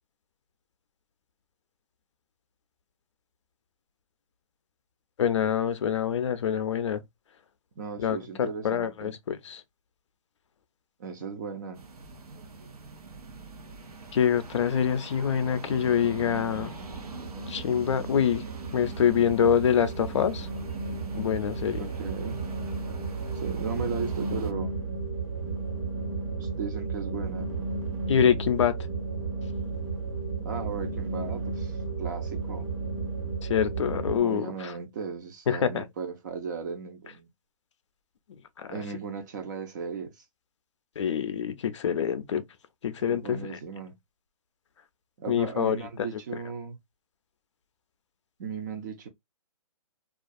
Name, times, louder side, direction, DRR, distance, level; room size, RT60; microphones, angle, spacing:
voice 1, 5.2-7.0 8.0-9.6 14.1-16.7 17.5-18.4 18.7-20.5 21.1-21.8 28.1-28.8 33.4-34.7 35.5-35.9 38.6-38.7 41.0-42.4 42.8-43.6 45.3-46.1, left 8 dB, 55° left, 0.5 m, -25 dB
voice 2, 7.8-9.2 11.0-11.8 21.8-22.4 23.4-24.8 26.4-27.5 30.4-32.7 34.2-37.3 38.7-40.1 43.0-44.0 45.2-46.8 48.4-49.1, right 5 dB, 30° right, 0.4 m, -36 dB
sound 1, 11.7-24.5, right 4 dB, 80° right, 0.7 m, -43 dB
sound 2, 15.5-34.2, right 4 dB, 60° right, 1.2 m, -34 dB
2.4 x 2.2 x 2.5 m
hypercardioid pair, 155°, 19 cm